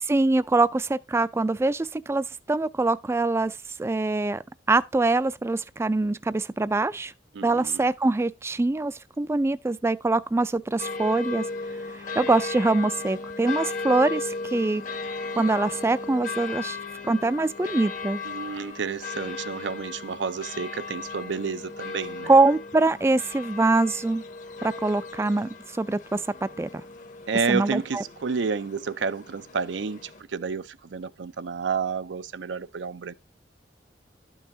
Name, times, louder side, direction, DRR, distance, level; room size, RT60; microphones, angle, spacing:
voice 1, 0.0-4.4 4.7-7.1 7.4-11.4 11.9-14.8 15.4-16.8 17.0-18.2 22.3-24.2 24.6-26.7 27.5-28.0, right 2 dB, 15° right, 0.3 m, -24 dB
voice 2, 7.3-7.8 18.2-22.3 27.3-33.1, right 5 dB, 85° right, 0.5 m, -30 dB
sound 1, 10.8-30.2, left 4 dB, 45° left, 0.9 m, -36 dB
12.0 x 5.5 x 2.6 m
head